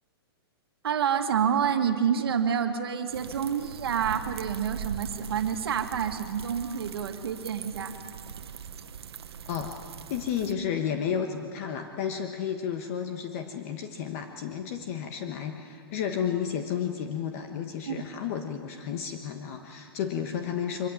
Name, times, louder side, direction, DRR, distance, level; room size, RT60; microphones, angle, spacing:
voice 1, 0.8-8.0 17.9-18.0, right 8 dB, 70° right, 6 dB, 1.8 m, -28 dB
sound 1, 3.1-10.5, right 7 dB, 90° right, 1.1 m, -41 dB
voice 2, 9.4-9.8 10.1-20.9, left 8 dB, 35° left, 5 dB, 1.3 m, -32 dB
24.0 x 15.0 x 9.2 m, 2.2 s
hypercardioid pair, 165°, 13 cm